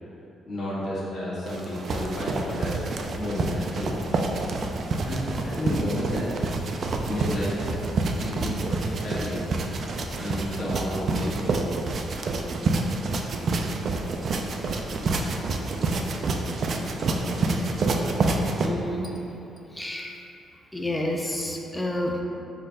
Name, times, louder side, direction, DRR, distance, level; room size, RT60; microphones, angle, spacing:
voice 1, 0.4-2.8 3.1-4.2 5.0-6.3 7.0-7.5 8.2-9.4 10.1-11.6, left 1 dB, 55° left, -9 dB, 1.2 m, -31 dB
sound 1, 1.5-18.7, right 3 dB, 55° right, 0.4 m, -28 dB
voice 2, 18.6-19.2 19.8-20.2 20.7-22.2, left 1 dB, 10° left, 0 dB, 0.4 m, -29 dB
4.4 x 2.4 x 4.9 m, 3.0 s
cardioid pair, 90°, 0 cm